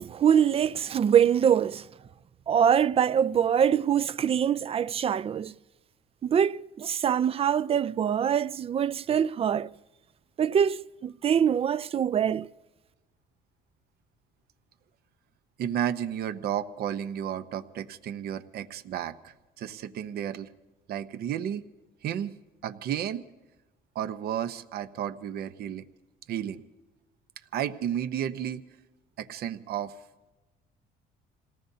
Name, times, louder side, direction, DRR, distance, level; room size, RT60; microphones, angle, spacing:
voice 1, 0.0-1.9 2.5-5.5 6.2-9.7 10.4-12.5, right 8 dB, 35° right, 0.4 m, -24 dB
voice 2, 15.6-20.5 20.9-21.6 22.0-22.3 22.6-23.3 23.9-25.8 26.3-26.6 27.5-28.6 29.2-29.9, right 10 dB, 70° right, 0.9 m, -32 dB
27.5 x 18.5 x 2.8 m
cardioid pair, 110°, 17 cm